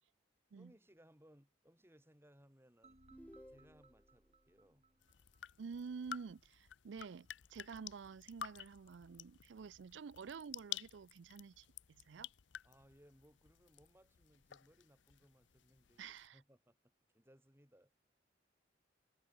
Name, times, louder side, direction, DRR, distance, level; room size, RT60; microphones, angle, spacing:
voice 1, 0.6-3.0 3.5-4.8 12.6-16.8 17.1-17.9, equal, 15° right, 6.8 m, -66 dB
sound 1, 2.8-5.9, right 2 dB, 35° right, 6.4 m, -68 dB
sound 2, 3.1-4.1, equal, 10° left, 0.8 m, -58 dB
sound 3, 5.0-16.3, left 10 dB, 80° left, 0.7 m, -52 dB
voice 2, 5.6-12.3 16.0-16.4, right 5 dB, 80° right, 0.4 m, -50 dB
head